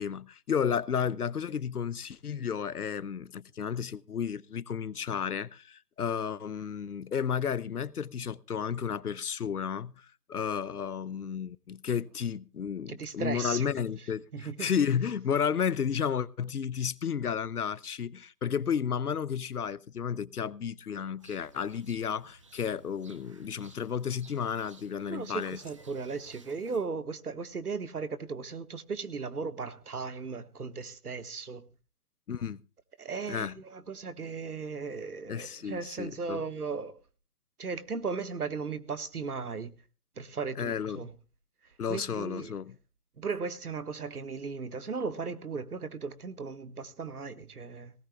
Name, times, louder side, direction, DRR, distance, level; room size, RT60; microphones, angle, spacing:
voice 1, 0.0-25.6 32.3-32.6 33.3-33.5 35.3-36.4 40.6-41.1 41.8-42.8, left 7 dB, 75° left, 0.9 m, -32 dB
voice 2, 12.9-13.7 14.3-14.7 25.1-31.6 33.0-37.0 37.6-39.7 40.2-41.1 41.9-42.5 43.2-47.9, right 5 dB, 75° right, 1.7 m, -36 dB
sound 1, 21.2-26.8, right 3 dB, 20° right, 0.9 m, -56 dB
18.5 x 18.0 x 2.3 m
figure-of-eight pair, 160°, 46 cm